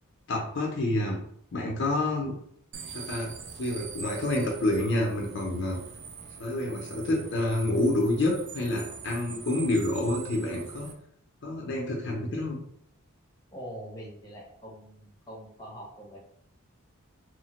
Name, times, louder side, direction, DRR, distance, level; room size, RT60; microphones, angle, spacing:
voice 1, 0.3-1.2 1.5-2.3 2.9-3.3 3.6-5.8 6.4-10.9 11.4-12.6, left 1 dB, 55° left, -1 dB, 0.5 m, -28 dB
sound 1, 2.7-10.9, right 6 dB, 50° right, 0.4 m, -43 dB
voice 2, 13.5-16.2, equal, 15° left, -3 dB, 0.8 m, -43 dB
3.1 x 2.1 x 2.9 m, 0.66 s
head